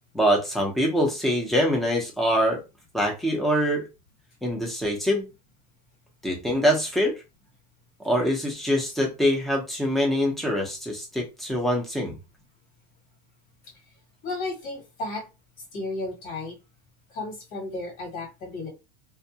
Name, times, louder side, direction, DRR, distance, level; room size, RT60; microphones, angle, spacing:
voice 1, 0.1-2.6 2.9-3.8 4.4-5.3 6.2-7.1 8.0-12.2, equal, ahead, 0 dB, 0.9 m, -24 dB
voice 2, 14.2-15.2 15.7-16.6 17.1-18.7, left 2 dB, 50° left, 0 dB, 1.5 m, -33 dB
2.4 x 2.3 x 2.8 m, 0.26 s
supercardioid pair, 130°, 20 cm